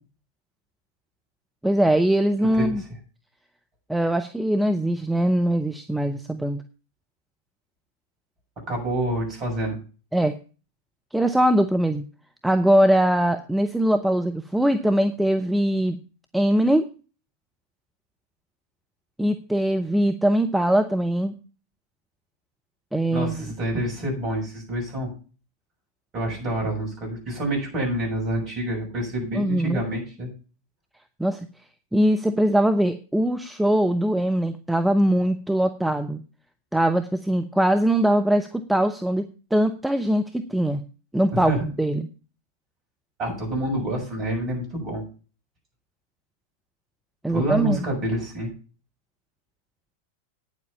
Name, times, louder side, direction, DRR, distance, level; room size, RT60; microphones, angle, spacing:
voice 1, 1.6-2.8 3.9-6.6 10.1-10.4 11.1-12.0 12.4-16.0 16.3-16.9 19.2-21.3 22.9-23.3 29.3-29.8 31.2-31.4 31.9-36.2 36.7-39.3 39.5-40.8 41.1-42.1 47.2-47.8, right 1 dB, 5° right, 7 dB, 0.8 m, -21 dB
voice 2, 8.7-9.8 23.1-25.1 26.1-30.3 41.3-41.6 43.2-45.0 47.3-48.5, right 1 dB, 35° right, 0 dB, 6.9 m, -27 dB
9.5 x 7.5 x 7.1 m, 0.36 s
figure-of-eight pair, 90°, 0 cm